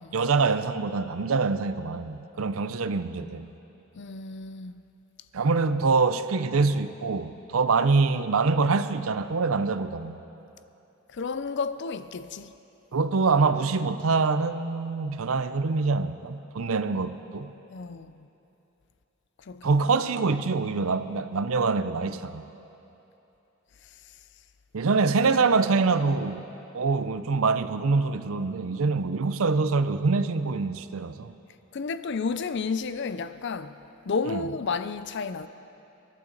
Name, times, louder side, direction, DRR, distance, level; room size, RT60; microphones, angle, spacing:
voice 1, 0.1-3.5 5.3-10.2 12.9-17.5 19.6-22.4 24.7-26.4 26.7-31.3 34.3-34.4, right 4 dB, 75° right, 0.6 m, -25 dB
voice 2, 3.9-4.8 11.1-12.5 17.7-18.3 19.5-19.7 31.7-33.8 34.1-35.5, left 4 dB, 55° left, 0.5 m, -31 dB
27.0 x 11.5 x 4.0 m
head